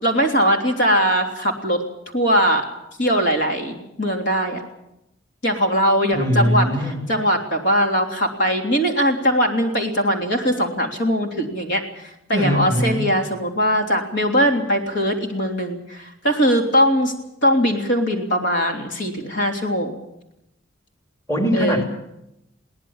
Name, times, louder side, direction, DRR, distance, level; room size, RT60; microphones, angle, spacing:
voice 1, 0.0-1.8 2.1-2.7 3.0-4.6 5.4-6.7 7.1-17.1 17.4-20.0 21.5-21.8, equal, 65° left, 2 dB, 3.3 m, -20 dB
voice 2, 6.1-7.0 12.3-13.0 21.3-21.8, equal, 15° left, 3 dB, 2.6 m, -21 dB
22.0 x 18.0 x 7.3 m, 0.86 s
head